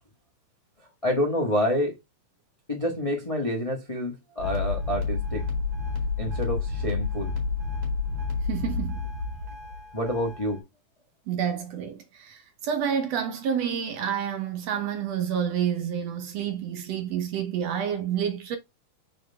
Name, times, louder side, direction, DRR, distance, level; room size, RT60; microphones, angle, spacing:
voice 1, 1.0-2.0 2.7-5.5 6.2-7.3 9.9-10.6, left 1 dB, 65° left, 0.3 m, -28 dB
sound 1, 4.4-10.6, left 4 dB, 50° right, 3.2 m, -30 dB
voice 2, 8.5-9.0 11.3-18.6, right 8 dB, 70° right, 1.7 m, -29 dB
6.3 x 4.4 x 3.5 m
omnidirectional pair, 3.6 m